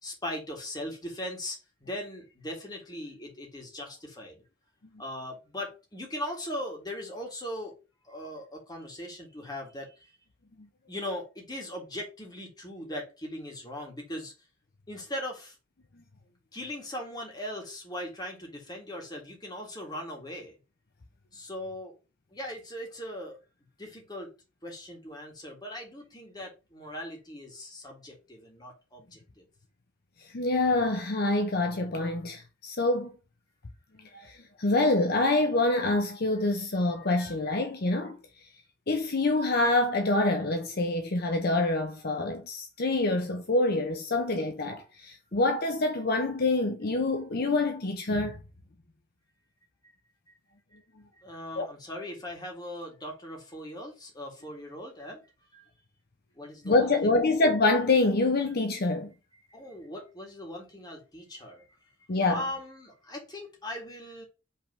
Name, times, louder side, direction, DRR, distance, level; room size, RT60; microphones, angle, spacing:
voice 1, 0.0-4.4 5.0-7.7 8.0-10.1 10.9-14.3 14.9-15.6 16.5-20.6 21.3-21.9 22.3-23.4 23.8-24.3 24.6-29.4 50.7-50.8 51.2-55.2 55.5-55.7 56.4-57.2 59.5-61.6 62.3-64.3, left 1 dB, 20° left, 1.9 m, -39 dB
voice 2, 30.2-33.1 34.1-38.5 38.9-48.4 51.6-51.7 56.6-59.1 62.1-62.4, left 2 dB, 50° left, 0.7 m, -26 dB
5.4 x 3.5 x 5.3 m
head